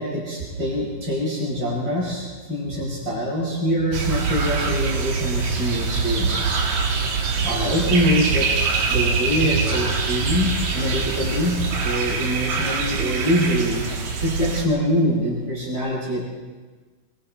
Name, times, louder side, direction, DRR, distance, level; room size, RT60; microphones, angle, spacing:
voice 1, 0.0-6.6 7.4-8.5 8.9-13.9 14.2-16.2, equal, 30° right, -5 dB, 6.2 m, -24 dB
sound 1, 3.9-14.6, right 4 dB, 55° right, 3.2 m, -24 dB
26.0 x 22.5 x 4.4 m, 1.3 s
omnidirectional pair, 4.0 m